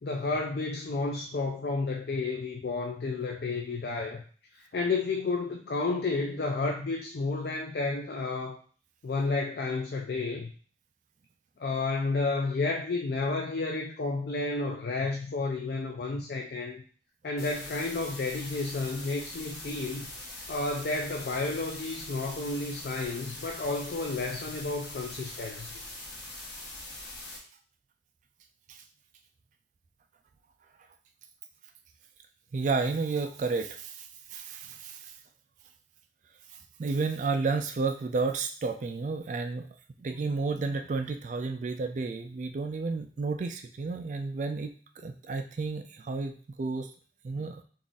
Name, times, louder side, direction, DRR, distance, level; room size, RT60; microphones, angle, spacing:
voice 1, 0.0-4.2 4.5-8.6 9.0-10.5 11.6-16.8 17.2-20.1 20.5-25.8, left 3 dB, 60° left, 2 dB, 0.4 m, -31 dB
sound 1, 17.4-27.4, left 2 dB, 75° left, 1.5 m, -43 dB
voice 2, 32.5-35.1 36.8-39.7 40.0-44.7 45.0-46.9 47.2-47.6, right 4 dB, 45° right, 6 dB, 0.3 m, -31 dB
3.6 x 2.5 x 3.9 m, 0.42 s
head